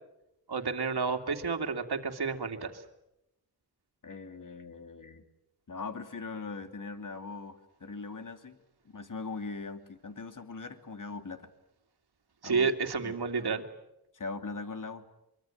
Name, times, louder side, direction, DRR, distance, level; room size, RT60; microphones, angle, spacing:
voice 1, 0.5-2.8 12.4-13.6, right 5 dB, 70° right, 5 dB, 2.7 m, -30 dB
voice 2, 4.0-5.3 5.7-8.6 8.8-11.5 12.4-12.7 13.0-13.4 14.1-15.0, left 4 dB, 50° left, 9 dB, 2.7 m, -41 dB
24.5 x 24.0 x 8.8 m, 0.85 s
wide cardioid pair, 75°, 40 cm